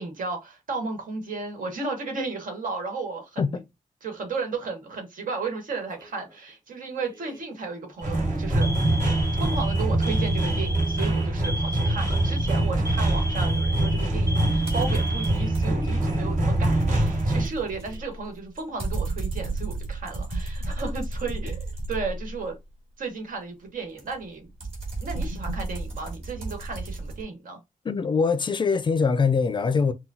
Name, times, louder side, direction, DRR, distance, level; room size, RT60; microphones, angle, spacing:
voice 1, 0.0-3.6 4.0-9.0 9.4-22.6 23.0-24.5 25.0-27.6, right 4 dB, 80° right, 1.5 m, -34 dB
Alarm, 5.7-6.2 7.1-7.4 7.8-8.0 8.6-16.2 16.5-16.6 17.5-18.2, right 1 dB, 25° right, 0.7 m, -37 dB
sound 1, 8.0-17.5, right 1 dB, 65° right, 2.1 m, -24 dB
sound 2, 14.7-15.9 16.3-22.5 24.0-27.2, right 2 dB, 45° right, 2.3 m, -33 dB
voice 2, 27.8-29.9, left 5 dB, 35° left, 0.4 m, -23 dB
5.8 x 2.2 x 2.7 m
wide cardioid pair, 180°, 14 cm